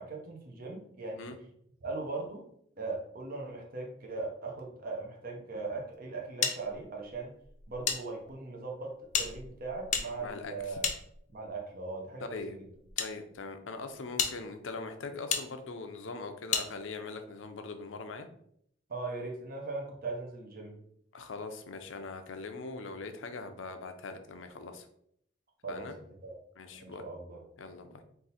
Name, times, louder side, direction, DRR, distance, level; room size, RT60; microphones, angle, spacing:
voice 1, 0.0-1.3 1.8-2.4 2.8-7.3 7.7-10.9 11.3-12.7 18.9-20.8 25.6-25.9 26.2-26.4 26.7-27.4, right 3 dB, 50° right, 0 dB, 0.8 m, -39 dB
sound 1, 6.4-8.0 8.3-8.4 9.1-11.6 12.4-13.1 13.7-13.8 14.2-14.3 15.3-15.4 16.5-16.7, left 6 dB, 40° left, 0.5 m, -33 dB
voice 2, 10.2-10.8 12.3-12.6 13.0-18.3 21.1-24.9 25.7-25.9 26.6-27.0 27.6-28.0, left 3 dB, 80° left, 7 dB, 0.6 m, -41 dB
3.7 x 2.6 x 4.1 m, 0.69 s
head